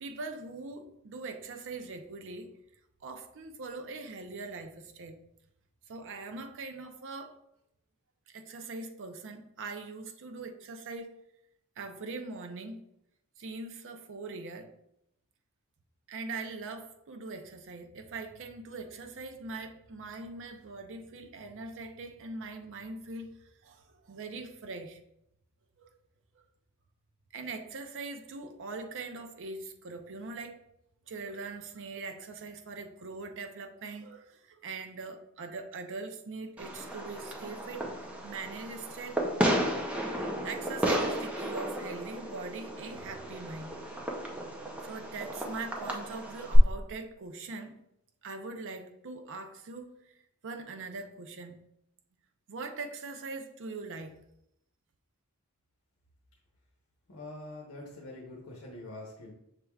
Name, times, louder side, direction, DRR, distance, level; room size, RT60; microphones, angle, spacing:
voice 1, 0.0-2.5 3.0-5.2 5.9-7.4 8.3-11.1 11.8-12.8 13.4-14.7 16.1-25.0 25.8-25.9 27.3-30.6 31.1-39.2 40.4-43.8 44.8-47.8 48.2-49.9 50.4-51.6 52.5-54.1, right 3 dB, 60° right, 6 dB, 0.5 m, -42 dB
Fireworks, 36.6-46.6, equal, 5° right, 0.6 m, -33 dB
voice 2, 57.1-59.3, left 2 dB, 70° left, -2 dB, 0.8 m, -44 dB
6.4 x 3.3 x 2.3 m, 0.79 s
head